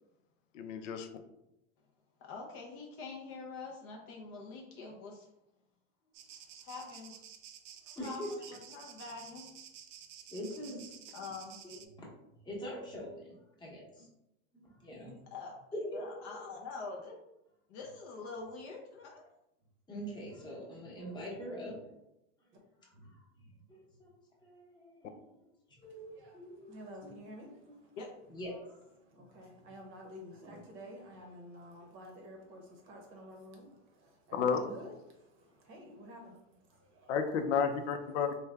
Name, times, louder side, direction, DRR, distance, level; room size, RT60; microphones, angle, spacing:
voice 1, 0.5-1.1 34.3-34.6 37.1-38.3, left 6 dB, 85° left, 6 dB, 0.6 m, -31 dB
voice 2, 2.2-5.3 6.3-7.1 8.0-9.5 11.1-11.5 15.3-15.6 15.9-17.2 17.7-19.2 28.0-28.1, left 4 dB, 40° left, 0 dB, 0.5 m, -45 dB
sound 1, 6.1-11.9, right 9 dB, 85° right, 0.5 m, -52 dB
voice 3, 7.8-8.5 10.3-10.9 11.2-11.3 11.6-12.1 12.4-14.1 14.5-15.2 15.7-16.2 19.9-21.8 22.4-22.5 22.8-25.4 25.7-27.1 27.5-27.7 28.3-28.6 29.1-29.2 29.6-29.7 30.5-30.6, equal, 10° left, -4 dB, 0.9 m, -44 dB
voice 4, 25.8-28.0 29.0-37.2, equal, 35° right, 1 dB, 0.8 m, -51 dB
3.3 x 2.2 x 3.3 m, 0.87 s
supercardioid pair, 135°, 36 cm